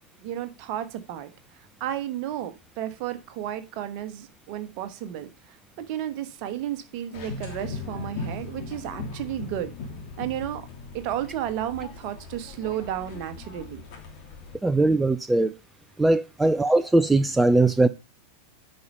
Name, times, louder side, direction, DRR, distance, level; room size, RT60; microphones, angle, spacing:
voice 1, 0.2-1.3 1.8-9.7 10.2-10.7 10.9-13.8 16.4-16.5, right 11 dB, 45° right, 1.3 m, -33 dB
sound 1, 7.1-14.6, left 4 dB, 45° left, 2.8 m, -39 dB
voice 2, 14.6-15.5 16.0-17.9, right 2 dB, 5° right, 0.5 m, -20 dB
9.4 x 4.6 x 5.4 m
figure-of-eight pair, 90°, 0 cm